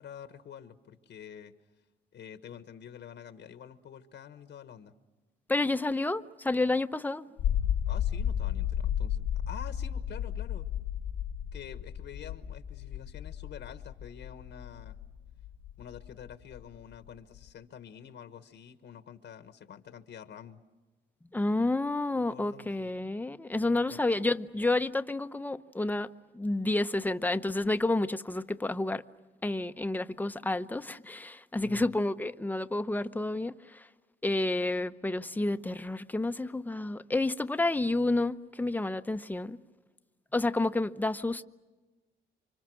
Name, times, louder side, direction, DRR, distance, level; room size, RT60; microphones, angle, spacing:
voice 1, 0.0-1.5 2.1-4.9 7.9-10.7 11.5-15.0 15.8-20.6 22.3-22.9 23.9-24.2 31.6-31.9, left 8 dB, 65° left, 1.3 m, -47 dB
voice 2, 5.5-7.2 21.3-26.1 26.3-29.0 29.4-33.9 34.2-39.6 40.3-41.4, left 2 dB, 10° left, 0.8 m, -30 dB
sound 1, 7.4-17.5, left 9 dB, 90° left, 2.0 m, -33 dB
29.5 x 25.5 x 6.3 m
cardioid pair, 90°, 20 cm